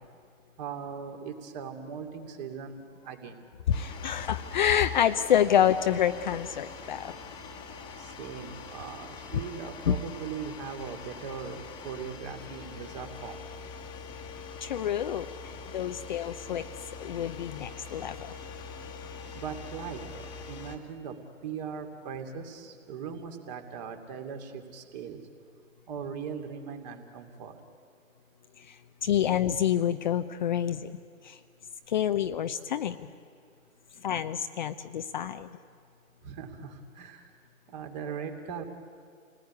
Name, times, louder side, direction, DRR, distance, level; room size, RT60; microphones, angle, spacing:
voice 1, 0.6-3.4 8.0-13.4 19.3-21.2 21.4-25.2 25.9-27.6 36.2-37.2 37.7-38.7, right 6 dB, 30° right, 5 dB, 2.8 m, -39 dB
voice 2, 3.7-7.1 9.9-10.0 14.6-16.6 17.0-18.3 28.6-28.8 29.0-30.9 31.2-31.4 31.9-33.1 34.0-35.5, left 9 dB, 35° left, 9 dB, 0.8 m, -27 dB
sound 1, 3.7-20.8, left 5 dB, 10° left, 1.7 m, -44 dB
29.5 x 19.5 x 9.6 m, 2.2 s
hypercardioid pair, 145°, 41 cm